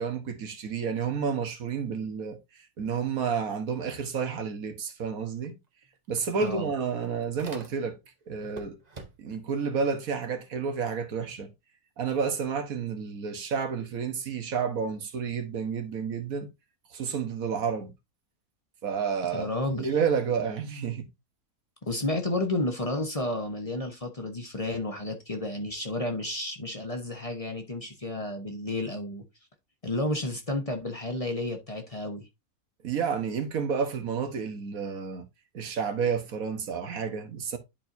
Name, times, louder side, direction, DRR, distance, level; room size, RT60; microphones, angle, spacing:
voice 1, 0.0-2.4 2.8-5.6 6.1-8.0 8.3-8.8 9.2-11.5 12.0-16.5 16.9-17.9 18.8-21.1 32.8-35.2 35.5-37.6, right 6 dB, 75° right, 1.6 m, -30 dB
sound 1, 5.4-5.5 5.8-8.1 8.4-9.5, right 3 dB, 35° right, 0.9 m, -46 dB
voice 2, 6.4-6.7 19.3-19.9 21.8-29.2 29.8-32.3, left 2 dB, 25° left, 1.1 m, -31 dB
11.0 x 4.5 x 2.6 m
omnidirectional pair, 1.5 m